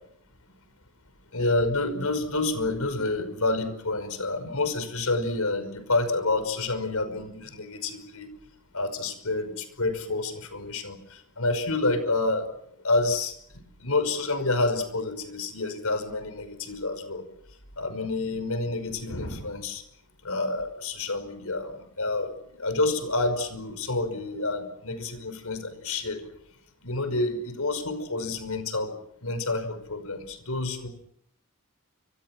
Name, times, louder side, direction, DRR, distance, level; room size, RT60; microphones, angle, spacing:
voice 1, 1.3-8.3 8.7-12.4 12.8-13.3 13.8-17.2 17.8-19.8 20.2-22.3 22.6-26.2 26.8-28.9 29.2-30.9, left 2 dB, 85° left, 11 dB, 5.6 m, -28 dB
29.5 x 26.5 x 6.1 m, 0.71 s
head